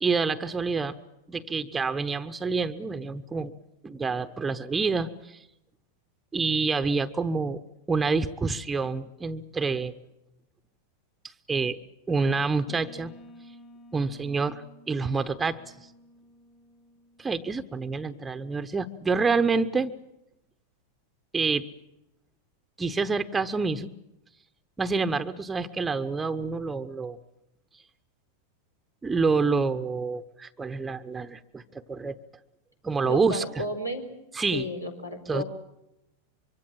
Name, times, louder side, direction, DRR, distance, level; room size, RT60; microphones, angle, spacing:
voice 1, 0.0-0.9 1.3-3.5 3.8-5.4 6.3-7.6 7.9-9.9 11.5-11.8 12.1-13.1 13.9-15.6 17.2-19.9 21.3-21.7 22.8-23.9 24.8-27.2 29.0-32.2 32.8-33.4 34.3-34.7 35.3-35.4, right 4 dB, 15° right, 10 dB, 1.0 m, -27 dB
sound 1, 12.7-18.2, left 1 dB, 20° left, 1.8 m, -53 dB
voice 2, 33.0-34.1 34.5-35.4, equal, 85° left, 4 dB, 4.3 m, -33 dB
25.0 x 24.0 x 7.6 m, 0.87 s
figure-of-eight pair, 90°, 0 cm